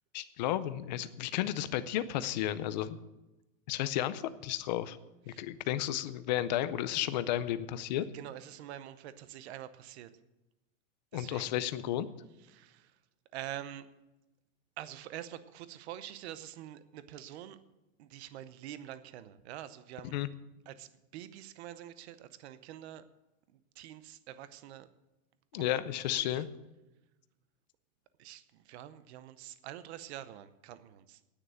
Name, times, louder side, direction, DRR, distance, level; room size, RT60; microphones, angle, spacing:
voice 1, 0.1-3.0 3.7-5.0 5.3-8.0 11.1-12.1 20.1-20.3 25.5-26.5, left 12 dB, 35° left, 13 dB, 0.5 m, -33 dB
voice 2, 8.1-10.1 11.1-11.5 12.4-13.0 13.3-13.9 14.8-17.6 18.0-20.2 20.7-23.0 23.5-24.9 25.5-25.8 26.1-26.4 28.2-31.2, right 12 dB, 50° right, 14 dB, 0.8 m, -46 dB
9.9 x 9.5 x 7.8 m, 0.99 s
supercardioid pair, 180°, 41 cm